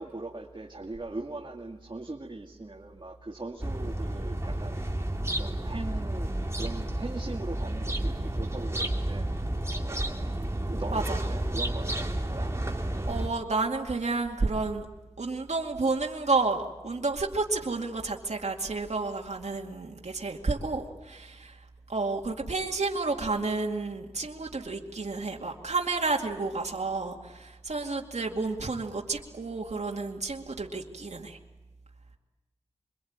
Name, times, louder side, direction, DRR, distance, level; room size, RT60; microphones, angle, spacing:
voice 1, 0.0-4.8 5.4-9.3 9.8-10.2 10.7-12.5, right 2 dB, 45° right, 0 dB, 2.3 m, -40 dB
sound 1, 3.6-13.3, right 1 dB, 25° right, 3.0 m, -31 dB
voice 2, 13.1-14.9 15.2-21.6 21.9-31.4, right 3 dB, 80° right, 0 dB, 2.3 m, -30 dB
26.5 x 23.0 x 8.8 m, 1.1 s
wide cardioid pair, 65°, 11 cm